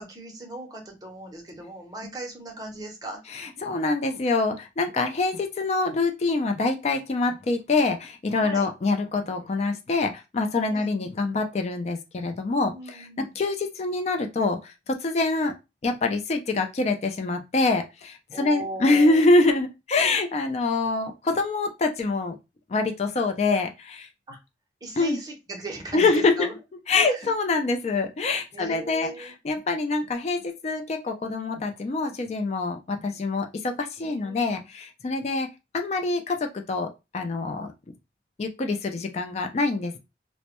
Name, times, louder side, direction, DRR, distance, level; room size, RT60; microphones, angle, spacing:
voice 1, 0.0-3.2 8.4-8.7 10.6-11.1 12.7-13.4 18.3-19.2 24.3-24.4 24.8-26.5 27.0-27.3 28.5-29.3 34.0-34.6, right 2 dB, 20° right, 0.6 m, -38 dB
voice 2, 3.6-15.5 15.8-22.4 22.7-24.1 25.0-25.2 25.9-26.5 26.9-35.5 35.7-36.9 37.1-37.7 38.4-40.0, left 3 dB, 40° left, 0.3 m, -25 dB
2.1 x 2.0 x 2.9 m
head